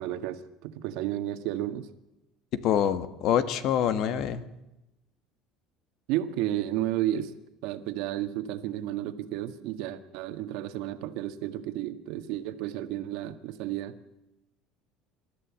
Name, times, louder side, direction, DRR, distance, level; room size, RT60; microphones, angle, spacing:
voice 1, 0.0-1.9 6.1-7.3 7.6-13.9, right 13 dB, 70° right, 10 dB, 1.7 m, -32 dB
voice 2, 2.6-4.4, left 9 dB, 50° left, 12 dB, 1.6 m, -25 dB
27.5 x 14.0 x 8.6 m, 0.92 s
cardioid pair, 165°, 0 cm